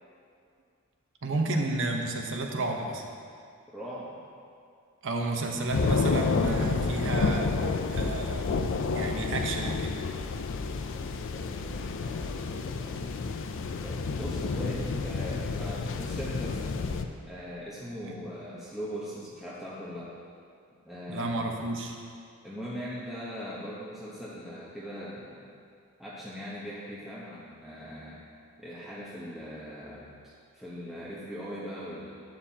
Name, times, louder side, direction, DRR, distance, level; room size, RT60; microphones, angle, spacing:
voice 1, 1.2-3.0 5.0-9.9 18.0-18.1 21.1-22.0, right 2 dB, 55° right, 2 dB, 1.0 m, -32 dB
voice 2, 3.7-4.2 5.5-5.7 10.6-13.1 13.8-16.8 17.3-20.1 20.8-21.5 22.4-25.5 26.0-28.2 28.6-32.1, equal, ahead, -9 dB, 1.0 m, -40 dB
sound 1, 5.7-17.1, left 4 dB, 55° left, 0.5 m, -30 dB
11.5 x 8.8 x 2.9 m, 2.3 s
head